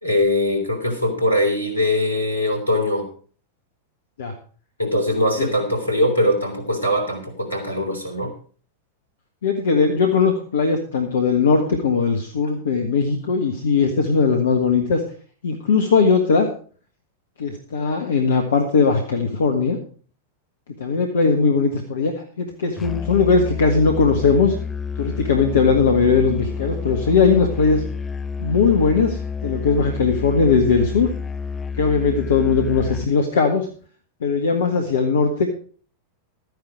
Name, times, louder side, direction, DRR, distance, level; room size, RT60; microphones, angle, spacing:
voice 1, 0.0-3.1 4.8-8.3, left 1 dB, 80° left, 5 dB, 3.2 m, -21 dB
voice 2, 9.4-15.0 15.4-16.5 17.4-19.8 20.8-24.5 25.0-27.8 28.4-31.1 31.8-33.7 34.2-35.5, left 5 dB, 65° left, 4 dB, 1.6 m, -19 dB
Musical instrument, 22.8-33.1, left 5 dB, 15° left, 0.5 m, -29 dB
13.0 x 10.0 x 4.8 m, 0.42 s
figure-of-eight pair, 90°, 0 cm